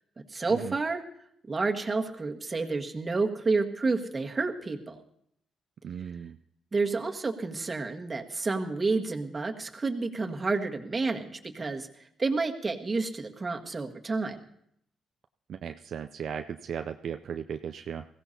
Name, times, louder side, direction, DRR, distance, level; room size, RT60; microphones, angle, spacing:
voice 1, 0.3-1.0 1.5-5.0 6.7-11.9 12.2-14.4, right 3 dB, 30° right, 3 dB, 1.6 m, -30 dB
voice 2, 5.8-6.4 15.5-18.0, right 8 dB, 65° right, 7 dB, 0.4 m, -36 dB
21.0 x 16.0 x 2.8 m, 0.72 s
cardioid pair, 75°, 0 cm